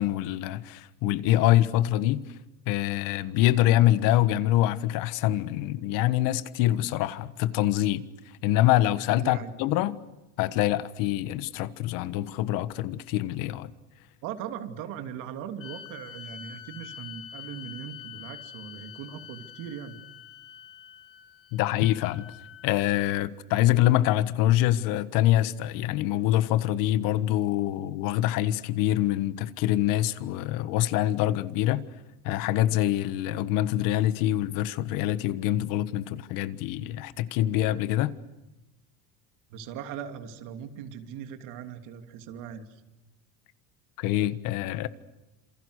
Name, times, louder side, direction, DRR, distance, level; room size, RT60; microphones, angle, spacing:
voice 1, 0.0-2.3 2.7-8.0 8.4-10.0 10.4-13.7 21.5-22.3 22.6-31.8 32.2-38.1 44.0-44.9, left 14 dB, 60° left, 1.5 m, -25 dB
voice 2, 9.2-9.5 14.2-20.0 28.2-28.3 39.5-42.8, right 8 dB, 55° right, 2.9 m, -39 dB
sound 1, 15.6-23.1, left 9 dB, 35° left, 3.9 m, -46 dB
28.0 x 27.5 x 6.5 m
cardioid pair, 155°, 37 cm